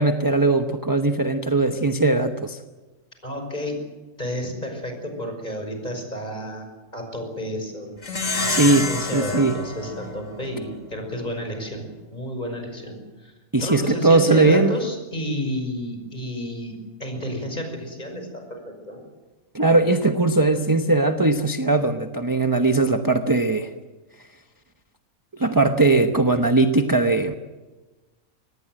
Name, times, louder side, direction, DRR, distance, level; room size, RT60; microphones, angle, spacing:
voice 1, 0.0-2.6 8.5-8.9 9.1-9.6 13.5-14.7 19.5-23.7 25.3-27.3, right 2 dB, 15° right, 6 dB, 0.9 m, -19 dB
voice 2, 3.2-3.8 4.2-13.3 13.6-16.7 17.0-19.0, equal, 30° left, 4 dB, 5.9 m, -31 dB
Plucked string instrument, 8.0-10.8, left 3 dB, 65° left, 3.0 m, -28 dB
24.5 x 19.5 x 7.8 m, 1.2 s
omnidirectional pair, 1.4 m